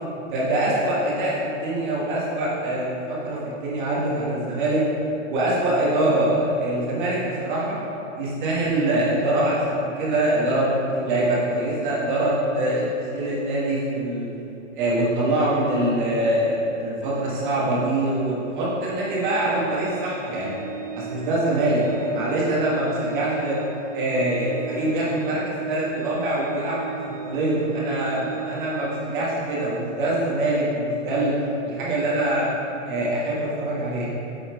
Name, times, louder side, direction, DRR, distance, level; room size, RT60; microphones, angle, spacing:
voice 1, 0.3-4.8 5.3-7.8 8.2-12.8 13.1-14.3 14.7-20.6 20.9-23.6 23.9-31.3 31.6-32.5 32.8-34.1, right 1 dB, 40° right, -6 dB, 1.6 m, -24 dB
Organ, 18.9-29.7, right 5 dB, 80° right, 1.5 m, -37 dB
8.2 x 4.2 x 4.6 m, 2.9 s
supercardioid pair, 180°, 39 cm